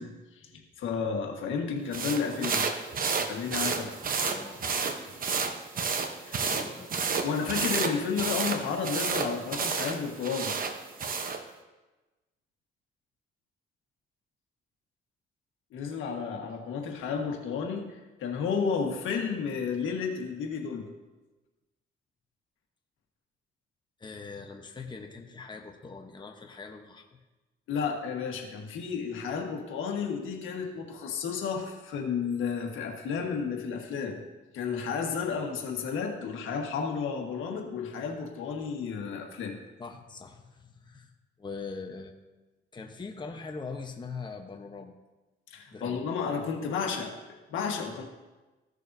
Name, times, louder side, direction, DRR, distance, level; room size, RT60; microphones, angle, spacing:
voice 1, 0.0-2.6 2.9-4.0 5.0-5.1 6.3-6.5 7.2-10.5 15.7-20.9 27.7-34.2 34.5-39.6 45.5-48.0, left 6 dB, 80° left, 2 dB, 1.5 m, -32 dB
sound 1, 1.9-11.4, right 5 dB, 45° right, 0.9 m, -31 dB
voice 2, 4.3-4.6 6.4-6.9 24.0-27.1 39.8-41.1 41.4-42.1 42.7-44.9 45.7-46.0, left 4 dB, 25° left, 3 dB, 0.9 m, -41 dB
15.0 x 6.5 x 2.7 m, 1.1 s
cardioid pair, 90°, 20 cm